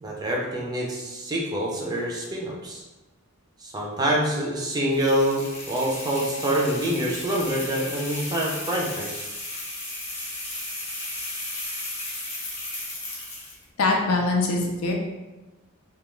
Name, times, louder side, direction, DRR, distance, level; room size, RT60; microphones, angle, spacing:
voice 1, 0.0-2.8 3.6-9.3, right 1 dB, 20° right, -3 dB, 0.4 m, -26 dB
sound 1, 4.9-13.6, left 1 dB, 30° left, 0.6 m, -35 dB
voice 2, 13.8-14.9, left 3 dB, 85° left, 0 dB, 0.5 m, -23 dB
2.2 x 2.2 x 3.0 m, 1.1 s
head